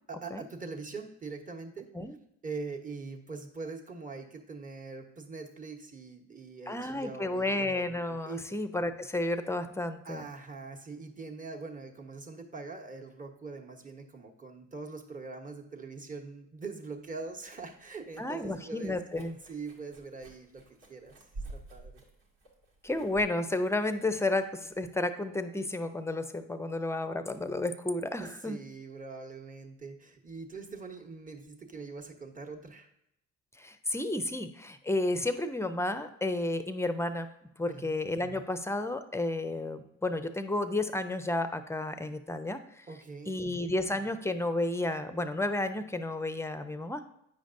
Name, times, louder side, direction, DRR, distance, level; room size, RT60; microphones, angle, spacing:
voice 1, 0.1-1.9 2.4-7.6 8.3-8.6 10.0-19.0 19.5-20.6 20.9-21.1 21.5-22.0 28.2-32.9 37.7-37.9 42.9-43.6, right 4 dB, 25° right, 3 dB, 1.1 m, -43 dB
voice 2, 6.7-10.3 18.2-19.4 22.8-28.6 33.6-37.3 37.6-42.9 43.3-47.0, left 2 dB, 10° left, 10 dB, 0.6 m, -32 dB
sound 1, 17.0-24.8, right 2 dB, 85° right, 1.5 m, -50 dB
8.6 x 5.1 x 2.6 m, 0.77 s
hypercardioid pair, 65°, 34 cm